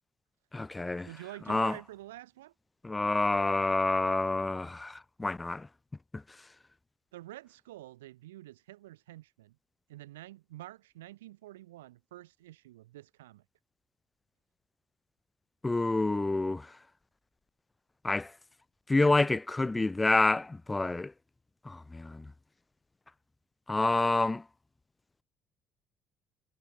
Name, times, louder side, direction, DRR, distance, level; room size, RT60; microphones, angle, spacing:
voice 1, 0.5-1.1 1.5-1.8 2.8-5.7 6.1-6.2 15.6-16.7 18.0-18.3 18.9-21.1 21.7-22.3 23.7-24.4, left 2 dB, 15° left, 0.3 m, -28 dB
voice 2, 1.0-2.5 7.1-9.6 9.9-13.4, right 16 dB, 75° right, 3.5 m, -48 dB
figure-of-eight pair, 55°, 0 cm